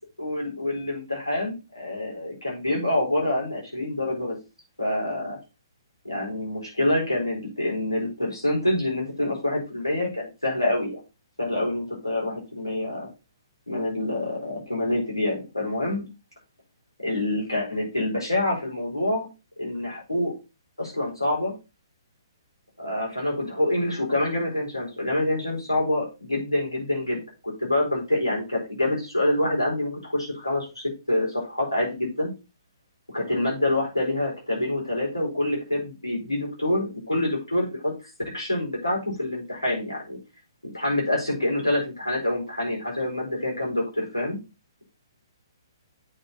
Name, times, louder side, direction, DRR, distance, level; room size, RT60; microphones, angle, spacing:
voice 1, 0.2-4.3 4.8-5.4 6.0-11.0 11.4-13.1 13.7-16.0 17.0-19.3 19.6-20.3 20.8-21.5 22.8-32.3 33.1-37.9 38.3-40.2 40.6-44.4, left 1 dB, 85° left, -2 dB, 4.5 m, -26 dB
8.5 x 4.8 x 4.1 m, 0.28 s
figure-of-eight pair, 125°, 2 cm